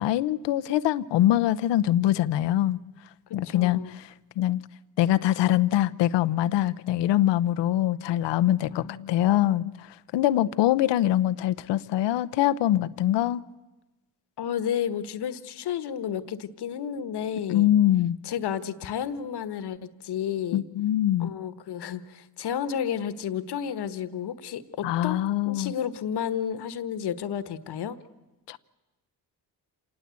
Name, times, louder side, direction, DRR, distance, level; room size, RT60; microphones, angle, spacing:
voice 1, 0.0-2.8 3.3-4.1 4.4-4.6 5.0-9.9 10.1-13.4 17.5-18.2 20.5-21.3 24.8-25.7 28.5-28.6, left 13 dB, 90° left, 0.8 m, -23 dB
voice 2, 3.4-4.0 8.7-9.4 14.4-17.7 18.2-20.6 21.2-25.2 25.4-28.0, left 8 dB, 70° left, 1.4 m, -32 dB
27.0 x 19.0 x 8.3 m
cardioid pair, 85°, 41 cm